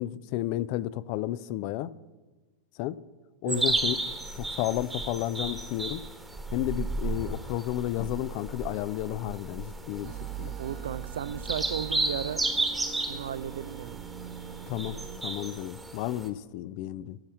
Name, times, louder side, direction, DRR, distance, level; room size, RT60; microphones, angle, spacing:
voice 1, 0.0-1.9 2.8-3.0 3.4-4.0 4.4-6.0 6.5-10.1 10.4-10.5 14.7-15.0 15.2-17.2, left 14 dB, 45° left, 0.4 m, -32 dB
sound 1, 3.5-16.3, right 2 dB, 10° right, 1.2 m, -34 dB
sound 2, 10.0-15.2, right 9 dB, 35° right, 0.8 m, -42 dB
voice 2, 10.6-12.4 13.1-14.0, right 9 dB, 60° right, 0.3 m, -34 dB
13.5 x 5.5 x 7.2 m
figure-of-eight pair, 90°, 0 cm